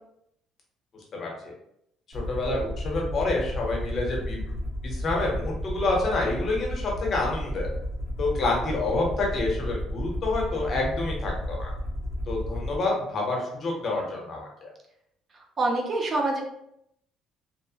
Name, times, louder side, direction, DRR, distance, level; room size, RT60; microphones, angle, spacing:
voice 1, 1.1-1.5 2.1-4.5 4.8-7.7 8.2-11.7 12.3-14.7, left 2 dB, 35° left, -1 dB, 0.7 m, -28 dB
Aircraft, 2.1-12.8, left 1 dB, 75° right, 1.0 m, -32 dB
voice 2, 15.6-16.4, right 2 dB, 30° right, 0 dB, 0.5 m, -25 dB
2.7 x 2.0 x 2.7 m, 0.76 s
cardioid pair, 165°, 0 cm